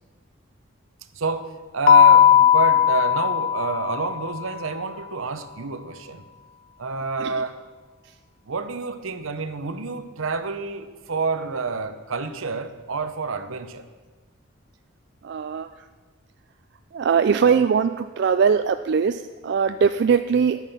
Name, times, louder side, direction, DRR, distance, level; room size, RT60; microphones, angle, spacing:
voice 1, 1.1-6.2 6.8-7.6 8.5-13.9, right 4 dB, 75° right, 10 dB, 0.8 m, -29 dB
Keyboard (musical), 1.9-4.4, left 9 dB, 40° left, 0.4 m, -16 dB
voice 2, 15.2-15.7 16.9-20.6, right 6 dB, 55° right, 9 dB, 0.3 m, -21 dB
11.0 x 9.1 x 5.7 m, 1.3 s
head